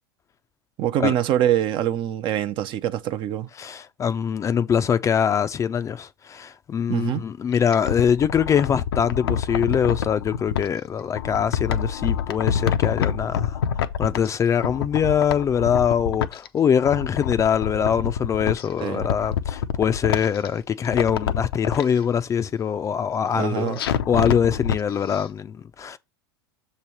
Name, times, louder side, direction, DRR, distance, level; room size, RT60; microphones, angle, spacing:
voice 1, 0.8-3.5 6.9-7.2 18.8-19.1 23.3-24.0, right 11 dB, 40° right, 0.6 m, -24 dB
voice 2, 3.6-13.6 14.0-26.0, left 8 dB, 25° left, 0.5 m, -23 dB
sound 1, 7.5-10.7 11.1-14.4 14.6-16.5 16.8-18.6 19.0-20.5 20.8-21.8 23.8-24.8 25.1-25.2, left 8 dB, 70° left, 0.6 m, -26 dB
6.8 x 3.3 x 5.9 m
hypercardioid pair, 90°, 13 cm